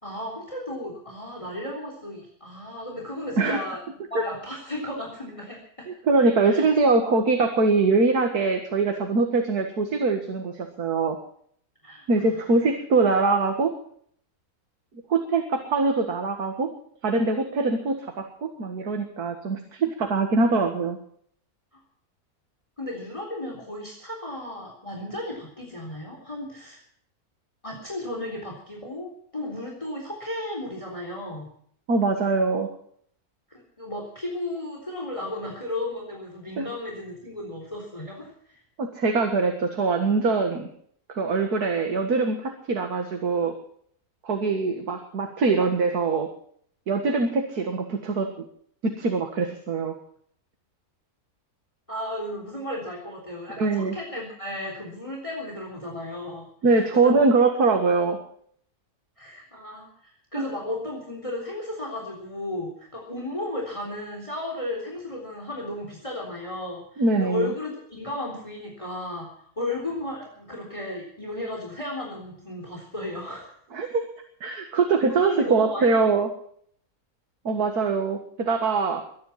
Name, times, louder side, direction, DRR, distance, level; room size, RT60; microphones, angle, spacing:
voice 1, 0.0-3.8 4.1-5.9 6.5-6.7 11.8-12.7 21.7-21.8 22.8-26.8 27.6-31.5 33.5-38.6 51.9-57.2 59.2-69.3 69.6-73.6 75.0-76.1, left 1 dB, 20° left, 0 dB, 3.8 m, -34 dB
voice 2, 6.1-11.2 12.1-13.7 15.1-16.7 17.0-21.0 31.9-32.7 36.6-36.7 38.8-40.7 41.1-43.5 44.2-46.3 46.9-48.3 48.8-49.9 53.6-53.9 56.6-58.2 60.3-60.4 67.0-67.5 73.7-74.1 74.4-76.3 77.5-79.0, right 3 dB, 85° right, 5 dB, 2.3 m, -23 dB
22.5 x 10.5 x 5.8 m, 0.63 s
omnidirectional pair, 1.6 m